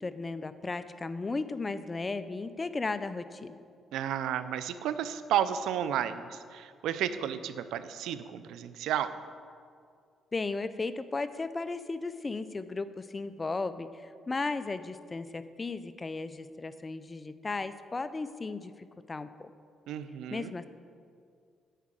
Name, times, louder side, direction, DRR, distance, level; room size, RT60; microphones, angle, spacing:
voice 1, 0.0-3.6 10.3-19.5 20.3-20.7, left 3 dB, 25° left, 12 dB, 0.5 m, -35 dB
voice 2, 3.9-9.1 19.9-20.5, right 10 dB, 85° right, 12 dB, 0.4 m, -32 dB
10.0 x 4.7 x 7.5 m, 2.2 s
cardioid pair, 90°, 0 cm